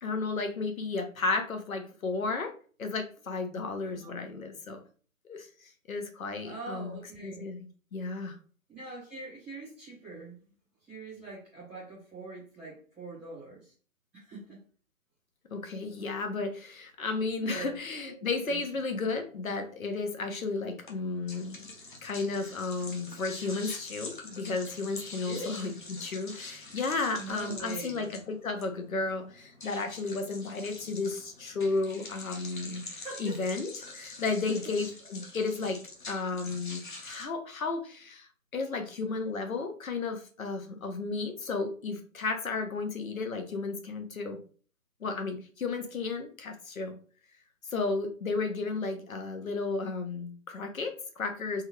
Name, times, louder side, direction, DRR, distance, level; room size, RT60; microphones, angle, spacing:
voice 1, 0.0-2.5 2.8-4.8 5.3-8.3 15.5-21.6 22.0-32.9 33.2-35.8 36.1-44.4 45.0-46.9 47.7-51.6, left 3 dB, 80° left, 5 dB, 1.0 m, -33 dB
voice 2, 6.4-7.4 8.7-10.4 10.8-13.7 14.1-14.6 17.4-18.6 25.2-25.6 27.2-28.1 32.9-33.4 36.3-36.4, right 3 dB, 5° right, -10 dB, 0.9 m, -43 dB
sound 1, 20.8-37.2, left 3 dB, 35° left, 0.6 m, -45 dB
3.5 x 2.2 x 3.1 m, 0.40 s
hypercardioid pair, 160°, 41 cm